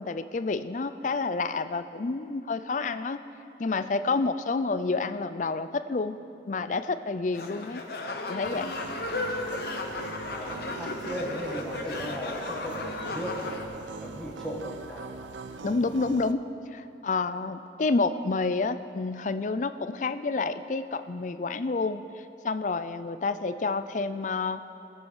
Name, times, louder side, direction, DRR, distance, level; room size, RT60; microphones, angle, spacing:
voice 1, 0.0-3.2 3.6-6.2 6.5-7.8 8.3-8.7 15.6-16.4 16.7-22.0 22.4-24.6, left 3 dB, 40° left, 11 dB, 0.4 m, -29 dB
sound 1, 7.3-13.6, left 2 dB, 55° left, 1.1 m, -35 dB
sound 2, 8.4-16.3, right 4 dB, 85° right, 0.6 m, -42 dB
voice 2, 10.3-13.7 14.0-15.3, equal, ahead, -6 dB, 1.8 m, -37 dB
20.5 x 8.3 x 4.9 m, 2.9 s
head